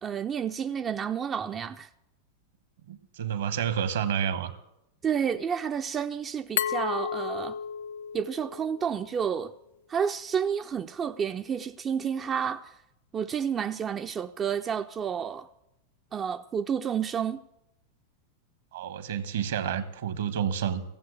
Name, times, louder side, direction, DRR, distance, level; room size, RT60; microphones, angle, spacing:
voice 1, 0.0-1.9 5.0-7.6 8.1-9.5 9.9-12.8 13.1-15.5 16.1-17.4, right 7 dB, 25° right, 0.5 m, -30 dB
voice 2, 2.9-4.5 18.7-20.8, right 8 dB, 60° right, 1.2 m, -29 dB
Glass, 6.6-9.3, left 8 dB, 60° left, 0.4 m, -33 dB
15.5 x 7.7 x 8.2 m
figure-of-eight pair, 90°, 0 cm